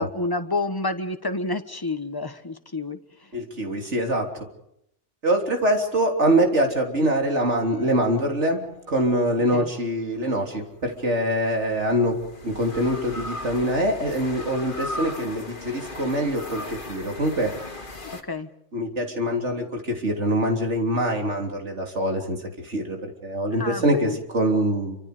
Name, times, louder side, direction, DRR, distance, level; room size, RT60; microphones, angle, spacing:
voice 1, 0.0-3.3 9.5-9.7 18.3-18.5 23.6-24.2, left 2 dB, 20° left, 9 dB, 1.3 m, -29 dB
voice 2, 3.3-4.5 5.2-12.2 12.4-17.5 18.7-25.0, right 1 dB, 70° right, 3 dB, 3.7 m, -24 dB
sound 1, 7.3-8.8 10.7-18.2, left 2 dB, 45° left, 2.4 m, -38 dB
27.5 x 25.5 x 5.1 m, 0.77 s
omnidirectional pair, 1.2 m